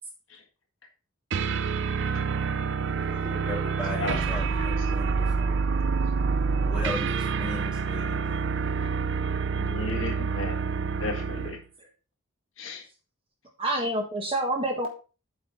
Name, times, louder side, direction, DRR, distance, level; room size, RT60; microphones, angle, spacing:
sound 1, 1.3-11.6, right 5 dB, 55° right, 0.4 m, -27 dB
voice 1, 3.1-5.6 6.6-8.3, left 1 dB, 5° right, -2 dB, 2.5 m, -37 dB
voice 2, 3.8-4.7 9.5-10.6 11.0-11.6 12.6-12.8, left 3 dB, 60° left, 2 dB, 1.8 m, -35 dB
voice 3, 13.6-14.9, right 1 dB, 25° right, 1 dB, 1.4 m, -27 dB
8.4 x 5.0 x 4.7 m, 0.34 s
head